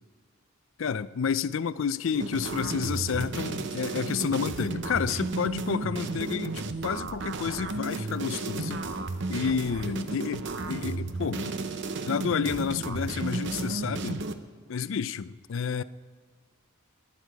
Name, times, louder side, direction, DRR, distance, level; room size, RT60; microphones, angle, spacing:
voice 1, 0.8-8.8 9.3-10.4 10.7-11.6 12.1-14.2 14.7-15.8, left 6 dB, 60° left, 0.4 m, -30 dB
sound 1, 2.1-14.4, right 3 dB, 55° right, 0.7 m, -33 dB
20.0 x 11.0 x 4.7 m
head